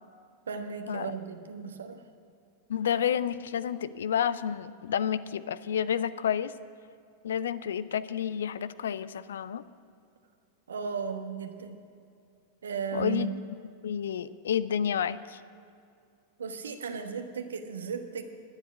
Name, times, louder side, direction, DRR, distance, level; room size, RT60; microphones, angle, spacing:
voice 1, 0.5-2.0 10.7-11.8 12.6-13.3 16.4-18.2, right 6 dB, 70° right, 6 dB, 1.1 m, -35 dB
voice 2, 2.7-6.5 7.2-9.6 12.9-13.3 13.8-15.4, left 8 dB, 65° left, 15 dB, 0.4 m, -30 dB
11.5 x 10.0 x 9.1 m, 2.4 s
figure-of-eight pair, 90°, 0 cm